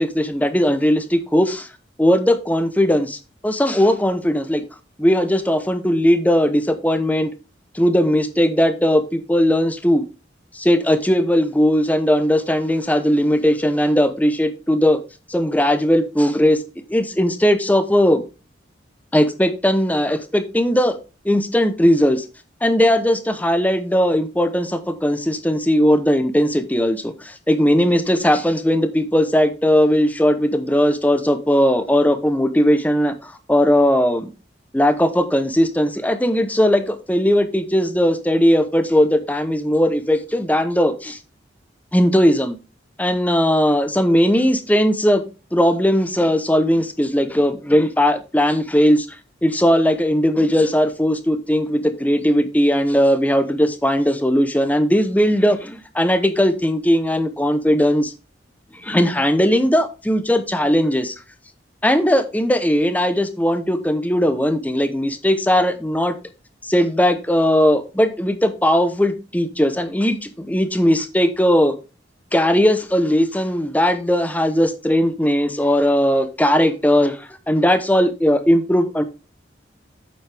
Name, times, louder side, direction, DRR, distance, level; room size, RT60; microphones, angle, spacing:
voice 1, 0.0-1.7 2.0-4.6 5.0-7.3 7.7-10.0 10.5-15.0 15.3-16.6 16.9-18.2 19.1-21.0 21.2-22.2 22.6-34.3 34.7-41.2 41.9-42.6 43.0-49.1 49.4-58.1 58.8-61.1 61.8-66.1 66.6-71.7 72.3-79.0, equal, 10° left, 10 dB, 0.8 m, -18 dB
8.6 x 7.4 x 3.4 m, 0.31 s
head